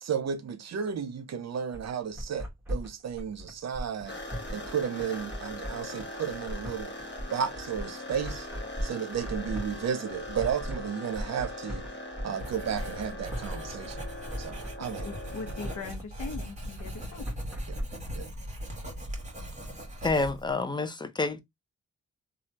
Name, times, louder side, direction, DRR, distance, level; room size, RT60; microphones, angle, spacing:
voice 1, 0.0-4.2 4.5-6.9 7.3-8.5 8.8-11.8 12.2-14.0 14.4-15.1 17.7-17.8 18.2-18.3, right 7 dB, 60° right, 0.7 m, -33 dB
sound 1, 1.7-17.8, equal, 5° right, 1.4 m, -38 dB
sound 2, 4.1-15.8, left 1 dB, 35° left, 1.1 m, -41 dB
Writing, 12.4-20.6, equal, 25° right, 1.5 m, -40 dB
voice 2, 15.0-17.3, left 4 dB, 70° left, 0.9 m, -40 dB
voice 3, 20.0-21.4, left 3 dB, 15° left, 0.5 m, -28 dB
3.2 x 2.4 x 2.7 m
cardioid pair, 70°, 31 cm